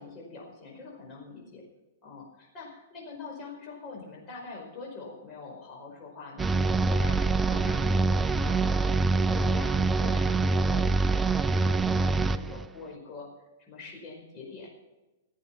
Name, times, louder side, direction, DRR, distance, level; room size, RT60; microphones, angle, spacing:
voice 1, 0.0-1.6 2.0-9.7 10.0-13.3 13.7-14.7, left 4 dB, 25° left, -2 dB, 4.8 m, -44 dB
sound 1, 6.4-12.7, right 3 dB, 10° right, 0.4 m, -25 dB
16.0 x 8.3 x 5.7 m, 1.1 s
hypercardioid pair, 150°, 0 cm